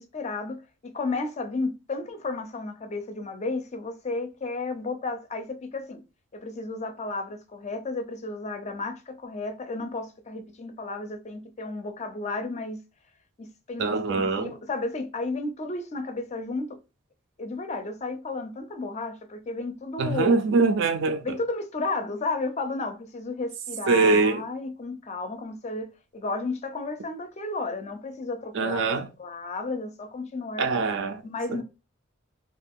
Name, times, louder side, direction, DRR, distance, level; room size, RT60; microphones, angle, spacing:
voice 1, 0.0-6.0 6.3-12.8 13.4-16.8 17.4-20.4 21.2-28.9 29.2-30.7 31.2-31.6, left 3 dB, 35° left, 0.4 m, -33 dB
voice 2, 13.8-14.5 20.0-21.2 23.9-24.4 28.5-29.1 30.6-31.2 31.5-31.6, right 4 dB, 60° right, 0.4 m, -23 dB
2.4 x 2.3 x 3.5 m
head